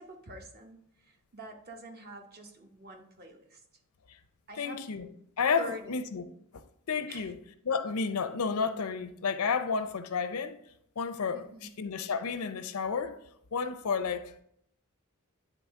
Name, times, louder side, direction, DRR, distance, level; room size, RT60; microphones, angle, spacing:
voice 1, 0.0-3.6 4.5-4.8 5.6-5.9 7.1-7.3 11.3-11.7, right 1 dB, 45° right, 0.9 m, -46 dB
voice 2, 4.6-5.1 5.4-6.2 6.5-7.4 7.6-10.6 11.0-11.4 11.8-13.2 13.5-14.4, left 5 dB, 75° left, 0.6 m, -31 dB
9.2 x 3.9 x 3.5 m
head